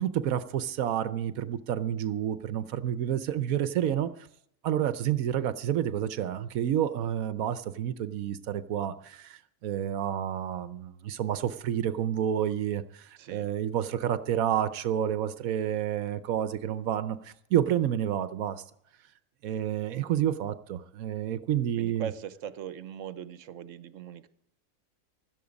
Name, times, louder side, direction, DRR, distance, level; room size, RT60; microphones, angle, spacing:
voice 1, 0.0-4.1 4.6-18.6 19.4-22.1, right 10 dB, 90° right, 1.2 m, -29 dB
voice 2, 13.2-13.5 21.8-24.3, right 9 dB, 70° right, 1.2 m, -40 dB
16.5 x 13.0 x 5.1 m
omnidirectional pair, 1.4 m